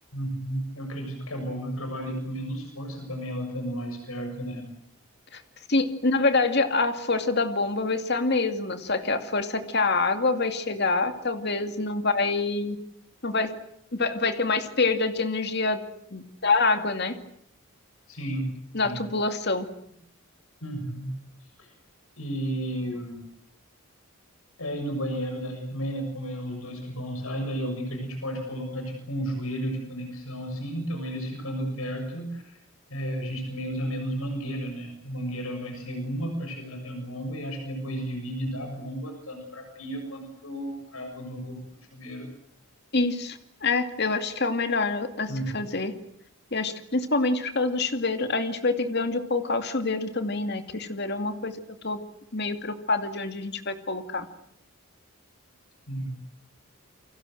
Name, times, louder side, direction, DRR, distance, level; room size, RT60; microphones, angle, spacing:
voice 1, 0.1-4.7 18.1-18.5 18.8-19.0 20.6-21.1 21.6-21.7 22.2-23.2 24.6-32.6 32.9-41.6 41.9-42.3 45.3-45.6 55.9-56.1, equal, 75° left, 5 dB, 7.0 m, -33 dB
voice 2, 5.7-12.8 13.2-13.5 13.9-15.8 16.1-17.2 18.7-19.7 42.9-45.9 46.5-52.0 52.3-54.3, left 3 dB, 50° left, 8 dB, 2.4 m, -26 dB
29.5 x 24.5 x 7.8 m, 0.70 s
head